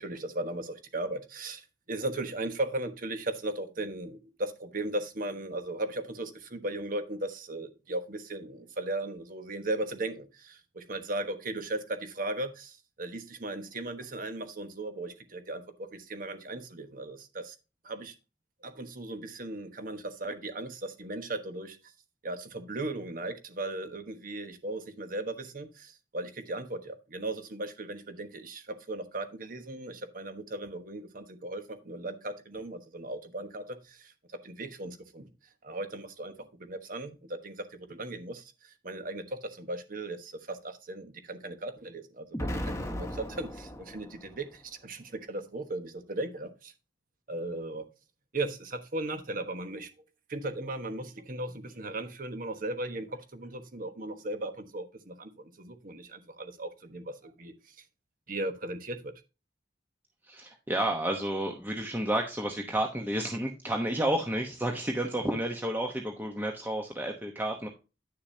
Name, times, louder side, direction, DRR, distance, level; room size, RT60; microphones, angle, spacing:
voice 1, 0.0-17.5 17.8-18.1 18.6-21.8 22.2-34.1 34.4-35.3 35.6-46.7 47.3-47.8 48.3-49.9 50.3-57.8 58.3-59.1, right 2 dB, 50° right, 1.2 m, -37 dB
Explosion, 42.3-44.5, equal, 15° left, 1.1 m, -36 dB
voice 2, 60.2-67.7, right 1 dB, 10° right, 1.0 m, -31 dB
10.0 x 6.7 x 2.8 m
head